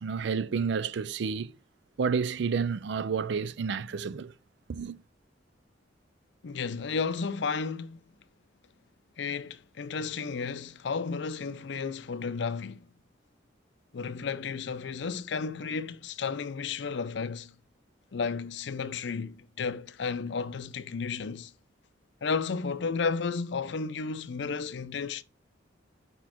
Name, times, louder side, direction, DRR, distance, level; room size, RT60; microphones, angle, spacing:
voice 1, 0.0-1.5 2.0-4.3 4.7-5.0, right 5 dB, 65° right, 0.4 m, -30 dB
voice 2, 6.4-8.0 9.2-12.9 13.9-17.5 18.1-21.5 22.2-25.2, left 5 dB, 65° left, 0.5 m, -33 dB
5.8 x 4.2 x 4.3 m
head